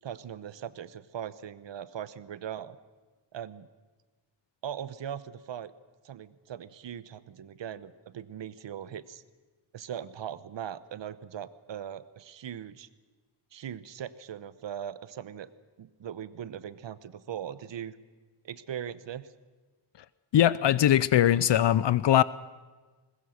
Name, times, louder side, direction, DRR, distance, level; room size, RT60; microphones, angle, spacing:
voice 1, 0.0-2.8 3.3-3.7 4.6-5.7 6.0-9.2 9.7-12.9 13.5-15.5 15.8-18.0 18.4-19.3, right 9 dB, 75° right, 16 dB, 1.0 m, -40 dB
voice 2, 20.3-22.2, left 11 dB, 70° left, 18 dB, 0.6 m, -21 dB
21.0 x 20.5 x 6.5 m, 1.3 s
wide cardioid pair, 110°, 44 cm